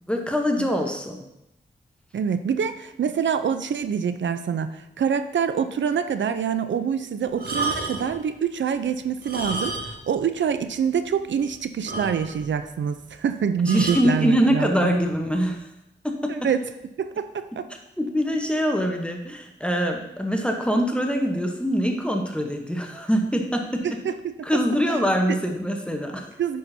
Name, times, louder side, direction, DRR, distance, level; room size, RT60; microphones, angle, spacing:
voice 1, 0.1-1.2 13.7-15.6 16.0-16.3 18.0-23.8 24.4-26.3, equal, 5° left, 2 dB, 0.9 m, -24 dB
voice 2, 2.1-15.0 16.3-16.6 17.0-17.7 23.8-24.3 25.3-25.4 26.4-26.6, right 7 dB, 75° right, 10 dB, 0.5 m, -26 dB
sound 1, 7.3-8.2 9.1-10.1 10.4-10.5 11.0-11.1 11.4-11.5 11.9-12.5 13.6-14.1 15.0-15.2, right 2 dB, 50° right, 1.4 m, -31 dB
8.4 x 5.7 x 2.7 m, 0.84 s
cardioid pair, 65°, 19 cm